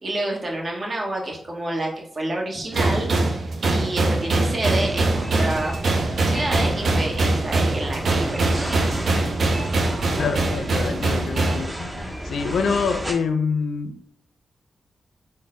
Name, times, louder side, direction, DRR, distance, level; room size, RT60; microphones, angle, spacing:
voice 1, 0.0-3.1 3.7-8.8, right 1 dB, 45° right, -1 dB, 1.1 m, -29 dB
sound 1, 2.7-11.7, right 2 dB, 65° right, 0.5 m, -23 dB
sound 2, 4.7-13.1, right 1 dB, 20° right, 0.7 m, -33 dB
voice 2, 10.2-13.9, left 5 dB, 80° left, 8 dB, 0.4 m, -26 dB
3.9 x 2.0 x 3.7 m, 0.66 s
cardioid pair, 55°, 0 cm